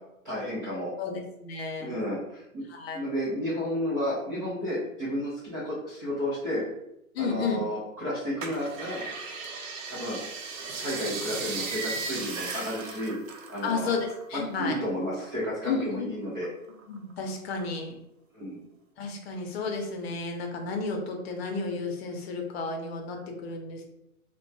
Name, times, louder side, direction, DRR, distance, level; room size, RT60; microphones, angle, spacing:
voice 1, 0.2-0.9 1.8-2.6 2.9-6.6 7.2-9.0 9.9-10.2 10.8-13.2 13.5-13.9 14.3-16.5 18.3-18.6, equal, 15° right, -9 dB, 0.4 m, -32 dB
voice 2, 1.0-1.9 2.7-3.0 7.1-7.6 13.6-14.7 15.7-16.1 16.9-17.9 19.0-23.8, left 4 dB, 45° left, 3 dB, 0.7 m, -32 dB
sound 1, 8.4-14.2 14.5-15.8 16.3-17.1 17.6-17.7, right 4 dB, 65° right, 0.7 m, -37 dB
2.9 x 2.2 x 2.6 m, 0.82 s
hypercardioid pair, 125°, 43 cm